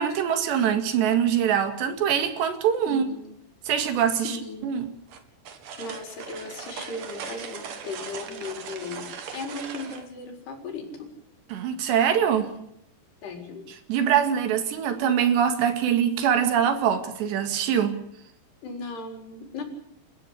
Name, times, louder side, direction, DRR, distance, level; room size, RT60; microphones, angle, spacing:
voice 1, 0.0-3.1 3.7-4.4 4.6-4.9 11.5-12.5 13.9-18.0, right 8 dB, 80° right, 7 dB, 4.3 m, -23 dB
voice 2, 2.9-3.3 4.2-4.6 5.8-9.1 9.3-11.1 13.2-13.6 18.6-19.6, left 3 dB, 70° left, 3 dB, 6.5 m, -37 dB
sound 1, 5.1-10.1, right 6 dB, 55° right, 3.3 m, -39 dB
29.5 x 14.5 x 8.2 m, 0.73 s
omnidirectional pair, 4.9 m